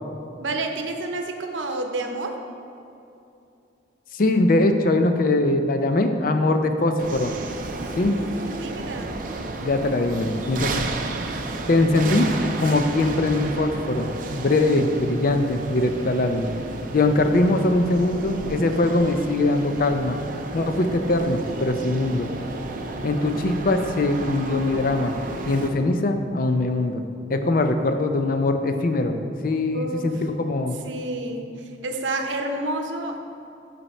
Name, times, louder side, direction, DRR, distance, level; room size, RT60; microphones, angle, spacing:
voice 1, 0.4-2.4 7.8-9.2 29.7-30.2 30.8-33.2, right 2 dB, 85° right, 4 dB, 0.7 m, -30 dB
voice 2, 4.1-7.3 8.0-8.2 9.6-10.9 11.7-12.3 12.6-16.5 16.9-20.2 20.5-22.3 23.0-25.2 25.5-27.0 27.3-30.8, left 2 dB, 50° left, 7 dB, 0.5 m, -22 dB
sound 1, 7.0-25.7, right 2 dB, 45° right, 0.5 m, -32 dB
8.9 x 4.2 x 4.2 m, 2.7 s
head